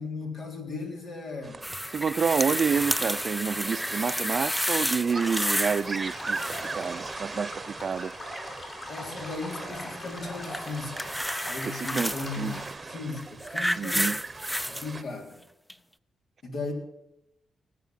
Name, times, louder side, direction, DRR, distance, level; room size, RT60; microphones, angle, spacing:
voice 1, 0.0-1.7 8.9-11.2 11.4-14.1 14.7-15.4 16.4-16.7, left 3 dB, 75° left, 3.6 m, -37 dB
sound 1, 1.4-15.0, right 3 dB, 30° right, 0.9 m, -40 dB
sound 2, 1.6-5.9 6.1-6.8 10.5-12.3 13.1-14.9 15.7-15.8, equal, 5° left, 0.5 m, -30 dB
voice 2, 1.9-6.4 6.7-8.1 11.6-12.6 13.8-14.2, right 6 dB, 50° right, 0.5 m, -28 dB
sound 3, 5.1-12.7, left 1 dB, 50° left, 5.9 m, -41 dB
18.5 x 8.4 x 7.5 m
cardioid pair, 90°, 0 cm